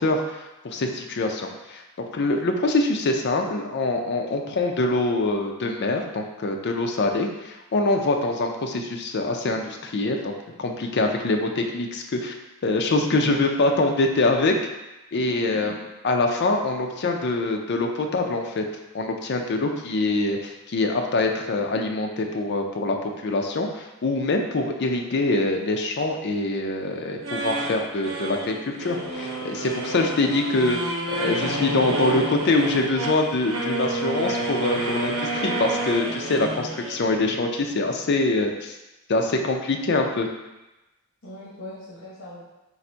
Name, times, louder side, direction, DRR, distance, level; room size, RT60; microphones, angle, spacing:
voice 1, 0.0-10.3 10.6-12.3 12.6-14.6 15.1-15.8 16.0-18.7 18.9-30.8 31.1-38.8 39.1-40.3, left 2 dB, 55° left, 3 dB, 0.5 m, -24 dB
voice 2, 13.0-13.3 15.1-15.9 41.2-42.4, left 1 dB, 70° left, -7 dB, 1.1 m, -40 dB
sound 1, 27.2-37.0, right 2 dB, 80° right, 0.8 m, -29 dB
4.0 x 2.5 x 4.4 m, 1.0 s
head